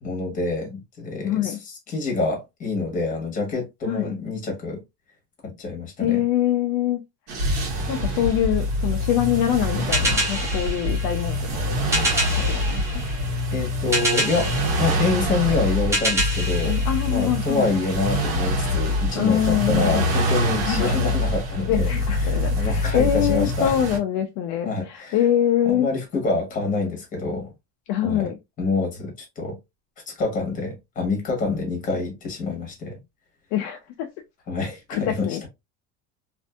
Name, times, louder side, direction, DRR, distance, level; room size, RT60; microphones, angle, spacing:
voice 1, 0.0-4.8 5.4-6.2 13.5-16.8 17.1-23.8 24.6-25.2 25.6-27.5 28.0-28.3 28.6-29.6 30.1-33.0 34.5-35.5, left 3 dB, 25° left, 1.2 m, -27 dB
voice 2, 1.2-1.6 3.9-4.1 6.0-7.0 7.9-11.6 12.3-12.8 16.6-17.7 19.1-20.1 20.7-21.0 21.7-25.9 27.9-28.3 33.5-34.1 34.9-35.5, left 11 dB, 55° left, 0.5 m, -24 dB
sound 1, 7.3-24.0, left 1 dB, 80° right, 1.1 m, -25 dB
sound 2, 9.9-17.8, right 1 dB, 10° right, 0.6 m, -28 dB
2.6 x 2.5 x 2.3 m
cardioid pair, 165°, 34 cm